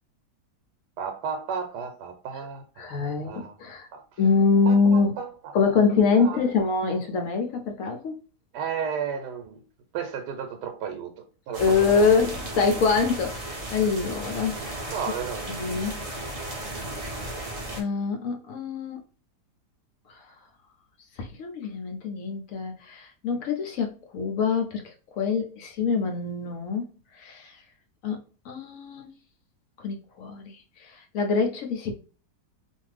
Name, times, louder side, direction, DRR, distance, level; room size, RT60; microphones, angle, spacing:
voice 1, 1.0-3.6 3.9-4.0 4.7-5.3 6.2-6.4 8.5-9.6 9.9-11.1 11.5-11.6 11.9-12.1 14.9-15.6, right 7 dB, 80° right, 1.2 m, -33 dB
voice 2, 2.8-3.9 4.2-5.2 5.5-8.2 11.6-14.6 15.5-16.0 17.8-19.0 20.1-20.2 21.2-26.9 27.1-27.6 28.0-28.2 28.4-29.1 29.8-31.9, left 5 dB, 65° left, 0.9 m, -25 dB
sound 1, 11.5-17.8, right 1 dB, 65° right, 0.3 m, -35 dB
2.6 x 2.5 x 3.2 m
omnidirectional pair, 1.8 m